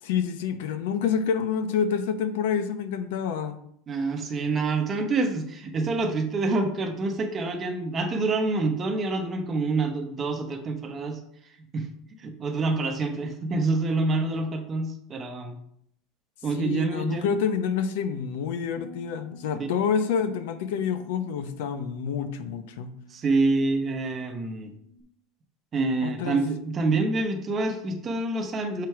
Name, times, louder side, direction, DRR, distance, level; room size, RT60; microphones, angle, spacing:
voice 1, 0.0-3.6 16.5-22.9 26.0-26.4, left 7 dB, 80° left, 10 dB, 0.8 m, -28 dB
voice 2, 3.9-11.2 11.7-11.9 12.2-15.6 16.4-17.3 23.1-24.7 25.7-28.9, right 3 dB, 20° right, 4 dB, 0.9 m, -27 dB
Bass guitar, 18.8-25.0, left 1 dB, 10° left, 0.5 m, -51 dB
6.8 x 4.6 x 4.7 m, 0.69 s
cardioid pair, 170°, 0 cm